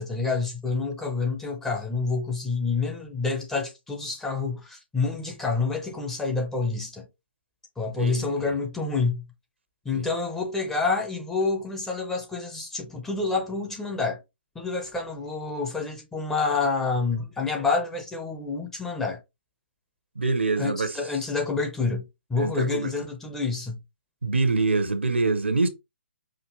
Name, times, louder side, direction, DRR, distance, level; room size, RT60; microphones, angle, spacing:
voice 1, 0.0-7.1 7.8-9.3 9.8-14.2 14.5-19.2 20.6-23.8, left 4 dB, 5° left, 0.7 m, -28 dB
voice 2, 7.9-8.5 9.9-10.1 20.1-21.0 22.4-22.9 24.2-25.7, right 3 dB, 75° right, 0.9 m, -25 dB
5.0 x 2.5 x 3.0 m
figure-of-eight pair, 135°, 6 cm